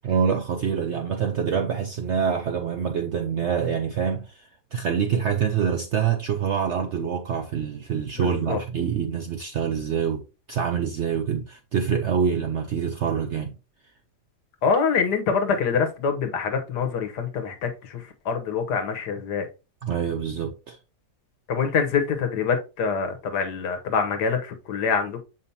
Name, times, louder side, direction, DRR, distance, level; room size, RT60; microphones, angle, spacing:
voice 1, 0.0-10.2 10.5-13.5 19.8-20.8, right 7 dB, 60° right, 0.7 m, -26 dB
voice 2, 8.2-8.6 14.6-19.5 21.5-25.2, left 5 dB, 85° left, 1.6 m, -25 dB
7.0 x 5.0 x 2.7 m
omnidirectional pair, 1.7 m